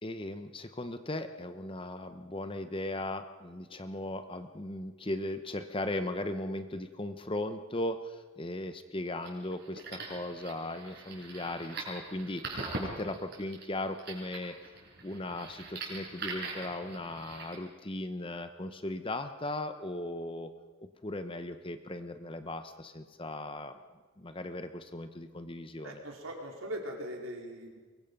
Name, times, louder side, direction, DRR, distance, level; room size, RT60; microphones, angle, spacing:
voice 1, 0.0-14.6 15.0-20.5 20.8-23.8 24.2-26.0, left 1 dB, 25° left, 9 dB, 0.9 m, -37 dB
sound 1, 9.0-17.5, right 3 dB, 50° right, 5.6 m, -42 dB
voice 2, 25.8-27.8, equal, 75° right, 0 dB, 4.1 m, -40 dB
23.5 x 22.0 x 5.4 m, 1.4 s
head